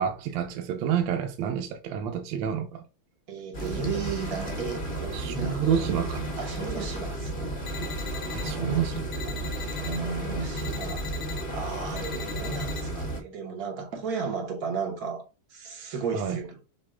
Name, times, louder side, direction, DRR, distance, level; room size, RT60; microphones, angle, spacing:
voice 1, 0.0-2.8 3.6-3.8 5.1-6.3 8.3-8.9 16.1-16.4, right 8 dB, 75° right, 1.3 m, -29 dB
voice 2, 3.3-5.7 6.4-7.5 8.3-8.9 9.6-15.2 15.5-16.6, right 5 dB, 50° right, 1.5 m, -34 dB
sound 1, 3.5-13.2, right 1 dB, 40° left, 0.8 m, -33 dB
sound 2, 7.7-8.5 9.1-10.0 10.6-11.4 12.0-12.8, left 10 dB, 70° left, 1.3 m, -40 dB
6.3 x 2.3 x 3.6 m
omnidirectional pair, 2.3 m